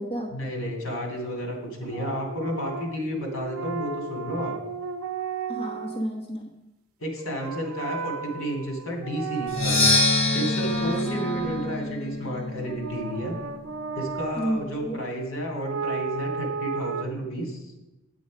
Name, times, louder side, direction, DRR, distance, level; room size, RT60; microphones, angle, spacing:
voice 1, 0.3-4.5 7.0-9.9 10.3-13.3 13.9-17.6, equal, 75° left, 3 dB, 2.6 m, -31 dB
sound 1, 1.8-6.1 7.2-10.1 10.4-12.0 12.6-14.5 15.6-17.0, right 5 dB, 85° right, 0.5 m, -34 dB
voice 2, 5.5-6.5 10.8-11.3 14.4-15.0, equal, 25° left, -1 dB, 1.0 m, -31 dB
Percussion, 9.5-13.3, left 2 dB, 60° left, 1.7 m, -25 dB
8.6 x 8.4 x 5.2 m, 1.0 s
head